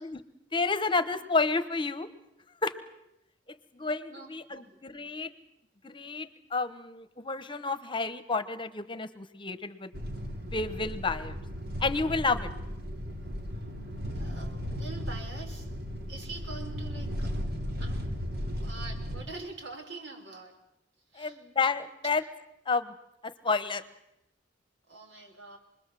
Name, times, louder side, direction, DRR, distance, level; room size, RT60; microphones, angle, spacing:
voice 1, 0.5-2.1 2.6-2.8 3.5-5.3 5.8-9.9 10.5-11.4 11.8-12.5 21.2-22.2 22.7-22.9 23.2-23.8, left 4 dB, 25° left, 12 dB, 1.1 m, -30 dB
voice 2, 4.1-4.8 13.5-13.7 14.1-15.8 16.1-17.3 17.8-18.0 18.5-20.6 21.1-21.4 24.9-25.6, right 3 dB, 80° right, 3 dB, 5.7 m, -44 dB
sound 1, 9.9-19.2, equal, 60° right, 3.3 m, -36 dB
27.0 x 21.0 x 7.7 m, 0.85 s
head